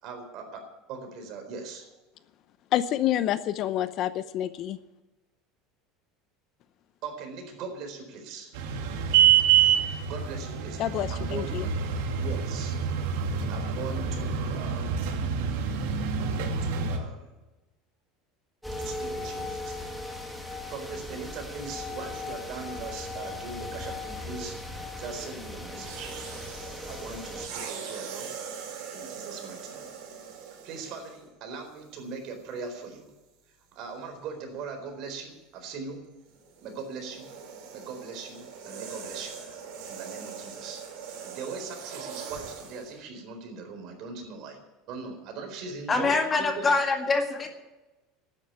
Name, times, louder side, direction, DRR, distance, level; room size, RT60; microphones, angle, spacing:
voice 1, 0.0-1.9 7.0-8.5 10.1-11.6 12.1-12.8 13.5-15.0 16.2-17.3 18.8-20.0 20.4-26.1 26.9-28.3 28.9-29.9 30.6-33.1 33.7-36.0 36.6-37.3 37.7-39.4 39.9-44.6 44.9-46.7, right 4 dB, 50° right, 5 dB, 4.2 m, -40 dB
voice 2, 2.7-4.8 10.8-11.7, left 12 dB, 45° left, 14 dB, 0.7 m, -28 dB
sound 1, 8.5-17.0, right 8 dB, 80° right, 2.5 m, -26 dB
sound 2, 18.6-27.5, left 2 dB, ahead, 2.0 m, -38 dB
sound 3, 25.7-31.3 32.1-32.3 36.2-42.9, right 6 dB, 65° right, 5.8 m, -41 dB
voice 3, 45.9-47.5, left 3 dB, 20° left, 5 dB, 1.8 m, -24 dB
12.5 x 9.9 x 9.8 m, 1.1 s
cardioid pair, 150°, 0 cm